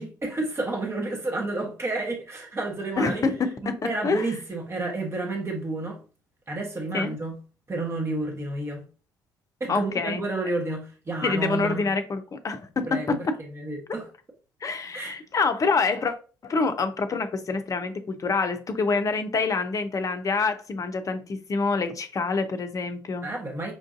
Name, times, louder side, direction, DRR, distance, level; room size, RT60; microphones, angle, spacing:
voice 1, 0.0-3.2 3.6-6.0 6.5-7.4 7.7-8.8 9.6-11.8 12.9-14.1 14.9-15.2 23.2-23.7, right 2 dB, 25° right, 1.1 m, -31 dB
voice 2, 3.0-4.3 6.9-7.1 9.7-10.2 11.2-13.3 14.6-16.1 16.4-23.3, left 4 dB, 35° left, 0.7 m, -26 dB
5.3 x 2.5 x 2.5 m
figure-of-eight pair, 50°, 10 cm